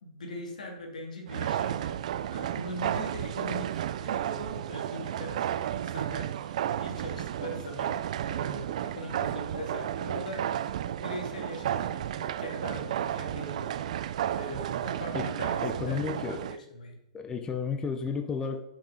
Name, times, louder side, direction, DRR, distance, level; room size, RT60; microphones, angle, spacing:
voice 1, 0.0-10.5 10.8-16.2 16.5-17.0, left 1 dB, 90° left, 2.3 m, -41 dB
sound 1, 1.3-16.6, right 11 dB, 65° right, 0.4 m, -32 dB
voice 2, 15.6-16.5 17.1-18.6, left 5 dB, 15° left, 0.6 m, -32 dB
8.4 x 6.1 x 3.9 m
hypercardioid pair, 140°, 4 cm